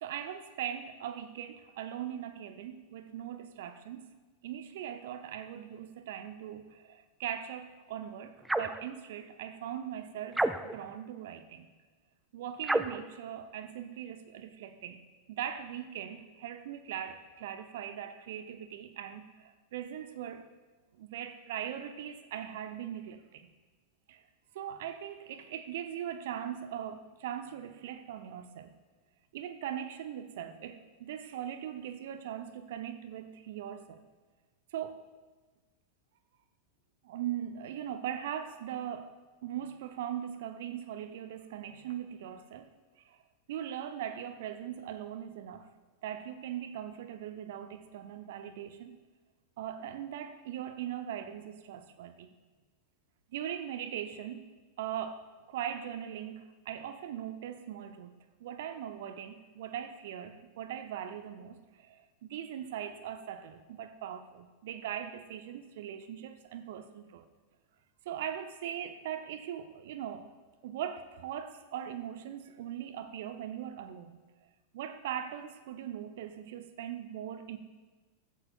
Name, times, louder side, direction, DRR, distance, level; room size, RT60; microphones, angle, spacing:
voice 1, 0.0-4.1 4.4-11.7 12.3-15.0 15.3-20.5 21.0-23.5 24.1-24.2 24.5-28.7 29.3-34.0 34.7-35.0 37.0-39.2 39.4-42.7 43.0-43.2 43.5-45.7 46.0-48.9 49.6-52.4 53.3-54.5 54.8-67.3 68.1-70.3 70.6-74.2 74.7-77.6, right 10 dB, 55° right, 0.6 m, -40 dB
sound 1, 8.5-8.8 10.3-10.9 12.6-13.1, right 2 dB, 5° right, 0.4 m, -30 dB
15.5 x 12.0 x 2.3 m
figure-of-eight pair, 90°, 0 cm